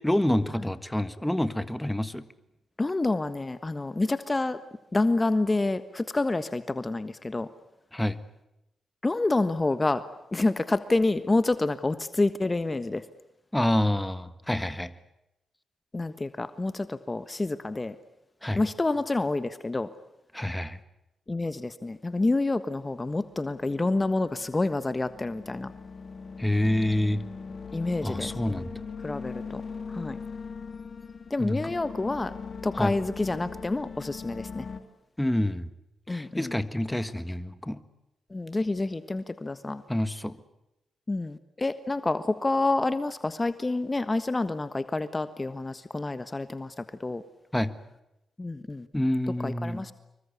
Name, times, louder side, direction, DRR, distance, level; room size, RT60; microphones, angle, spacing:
voice 1, 0.0-2.3 7.9-8.2 13.5-14.9 18.4-18.6 20.3-20.8 26.4-27.3 28.0-28.7 31.4-31.7 32.7-32.9 35.2-35.7 36.1-37.8 39.9-40.4 47.5-47.8 48.9-49.9, left 1 dB, 10° left, 13 dB, 1.6 m, -27 dB
voice 2, 2.8-4.6 4.9-7.5 9.0-10.1 10.3-13.0 15.9-18.0 18.5-19.9 21.3-25.7 27.7-28.6 29.0-29.6 29.9-30.2 31.3-32.3 32.6-34.7 36.1-36.5 38.3-39.8 41.1-47.2 48.4-48.9 49.4-49.9, left 2 dB, 25° left, 12 dB, 1.4 m, -28 dB
sound 1, 23.0-34.8, left 5 dB, 55° left, 2.6 m, -40 dB
26.5 x 23.5 x 8.4 m, 0.89 s
supercardioid pair, 50°, 0 cm